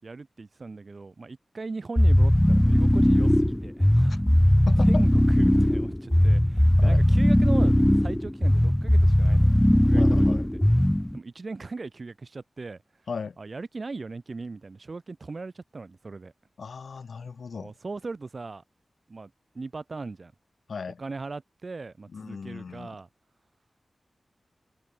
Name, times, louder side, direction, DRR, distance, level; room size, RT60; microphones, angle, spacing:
voice 1, 0.0-4.5 4.8-10.2 11.1-12.8 13.4-16.3 17.5-18.6 19.1-20.3 21.0-23.1, right 3 dB, 45° right, 4.3 m, -39 dB
sound 1, 2.0-11.2, left 1 dB, 5° left, 0.4 m, -19 dB
voice 2, 4.7-5.0 6.8-7.0 10.0-10.5 13.1-13.4 16.6-17.7 20.7-21.0 22.1-22.9, left 5 dB, 75° left, 1.1 m, -36 dB
wide cardioid pair, 130°, 0 cm